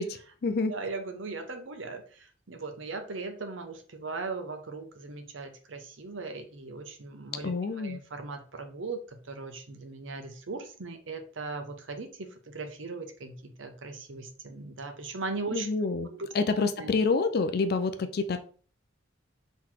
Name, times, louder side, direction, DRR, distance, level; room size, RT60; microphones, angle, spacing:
voice 1, 0.0-0.7 7.4-8.0 15.5-16.1 16.3-18.4, left 4 dB, 50° left, 9 dB, 0.4 m, -28 dB
voice 2, 0.7-15.7 16.1-16.3 16.8-17.0, right 3 dB, 70° right, 6 dB, 0.8 m, -39 dB
4.0 x 3.1 x 4.3 m, 0.42 s
head